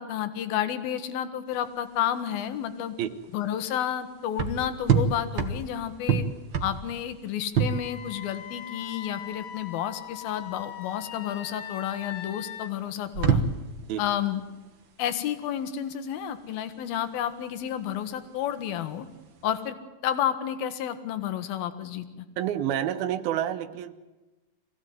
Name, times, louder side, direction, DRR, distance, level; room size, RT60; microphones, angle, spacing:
voice 1, 0.0-3.0 3.3-6.3 6.6-13.4 14.0-14.4 15.0-19.1 19.4-19.8 20.0-22.3, left 10 dB, 90° left, 10 dB, 3.1 m, -31 dB
sound 1, 1.5-19.7, right 6 dB, 55° right, 1.3 m, -31 dB
Wind instrument woodwind instrument, 7.6-12.7, left 9 dB, 65° left, 2.2 m, -41 dB
voice 2, 22.4-23.9, right 11 dB, 90° right, 10 dB, 2.9 m, -29 dB
24.0 x 16.5 x 9.3 m, 1.2 s
omnidirectional pair, 4.1 m